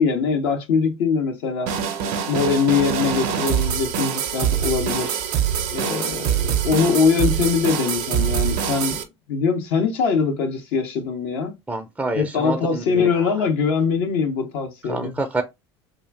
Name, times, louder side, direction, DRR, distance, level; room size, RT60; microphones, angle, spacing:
voice 1, 0.0-1.7 2.3-5.2 5.7-9.0 9.3-11.5 12.1-15.2, left 5 dB, 65° left, 0.7 m, -22 dB
sound 1, 1.7-9.0, right 8 dB, 60° right, 0.6 m, -24 dB
voice 2, 11.7-13.5 14.9-15.4, right 2 dB, 10° right, 0.4 m, -28 dB
2.4 x 2.1 x 3.3 m
hypercardioid pair, 70°, 14 cm